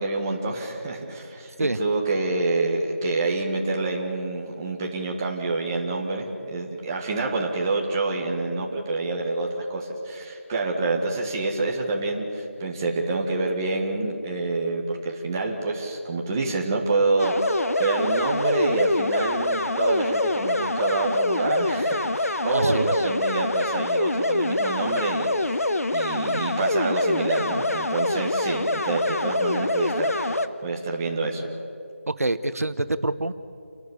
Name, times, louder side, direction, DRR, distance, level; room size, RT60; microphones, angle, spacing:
voice 1, 0.0-25.7 25.9-30.3 30.6-31.5, right 3 dB, 15° right, -1 dB, 1.5 m, -27 dB
sound 1, 17.2-30.5, left 2 dB, 80° left, 1.2 m, -25 dB
voice 2, 22.5-23.1 32.2-33.3, right 2 dB, 90° right, 12 dB, 1.0 m, -26 dB
29.0 x 12.0 x 8.3 m, 2.6 s
figure-of-eight pair, 175°, 8 cm